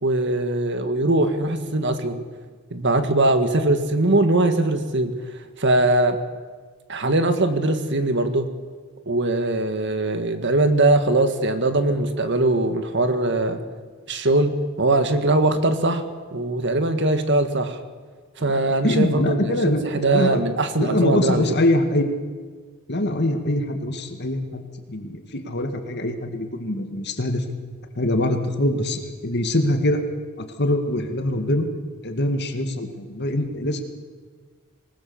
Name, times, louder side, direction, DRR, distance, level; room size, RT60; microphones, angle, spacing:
voice 1, 0.0-2.2 2.7-5.1 5.6-6.2 6.9-8.5 9.1-13.6 14.1-16.0 16.3-17.8 18.4-21.4, right 2 dB, 55° right, 8 dB, 1.8 m, -21 dB
voice 2, 18.8-20.4 20.8-22.1 22.9-27.4 28.0-30.0 30.4-31.7 32.0-33.8, left 1 dB, 50° left, 6 dB, 2.1 m, -23 dB
25.5 x 20.0 x 7.2 m, 1.5 s
head